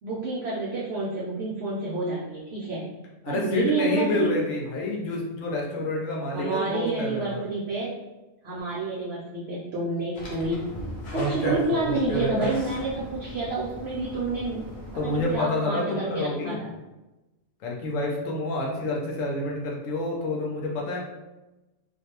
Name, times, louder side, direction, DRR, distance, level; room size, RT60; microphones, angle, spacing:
voice 1, 0.0-2.9 3.3-4.3 6.3-7.9 8.4-10.6 11.1-14.6 15.0-16.5, right 2 dB, 60° right, -6 dB, 0.7 m, -29 dB
voice 2, 3.2-7.4 15.0-16.6 17.6-21.0, left 2 dB, 70° left, -1 dB, 0.9 m, -28 dB
sound 1, 10.2-15.4, right 1 dB, 55° left, 0.6 m, -33 dB
2.5 x 2.2 x 2.8 m, 1.1 s
omnidirectional pair, 1.5 m